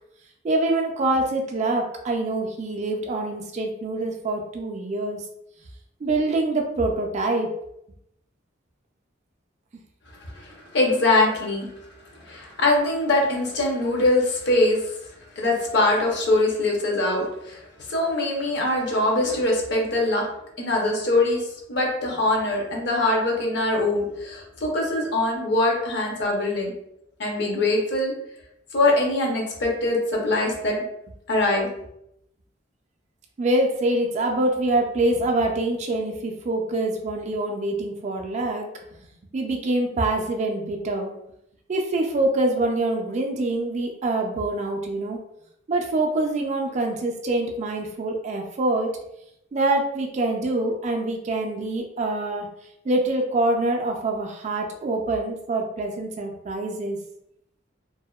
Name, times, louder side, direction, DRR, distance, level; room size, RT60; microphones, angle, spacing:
voice 1, 0.4-5.2 6.0-7.5 33.4-38.7 39.3-41.1 41.7-45.2 45.7-48.9 49.5-52.5 52.8-57.0, right 2 dB, 40° right, 2 dB, 0.3 m, -25 dB
voice 2, 10.3-11.7 12.2-14.8 15.4-17.6 17.9-20.2 20.6-21.4 21.7-26.7 27.2-28.1 28.7-30.7 31.3-31.7, left 2 dB, 65° left, -1 dB, 0.7 m, -22 dB
2.6 x 2.1 x 2.2 m, 0.79 s
head